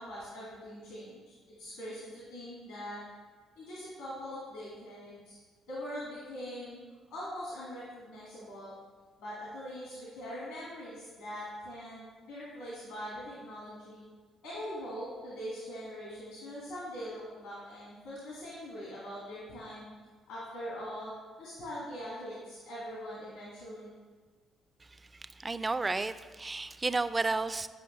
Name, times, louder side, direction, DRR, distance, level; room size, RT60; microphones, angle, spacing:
voice 1, 0.0-3.0 3.6-5.4 5.7-6.8 7.1-8.7 9.2-14.0 14.4-19.9 20.3-21.1 21.4-23.9, equal, 85° left, -8 dB, 2.1 m, -42 dB
voice 2, 25.1-27.7, right 3 dB, 30° right, 13 dB, 0.4 m, -32 dB
9.2 x 5.3 x 3.2 m, 1.4 s
hypercardioid pair, 50°, 0 cm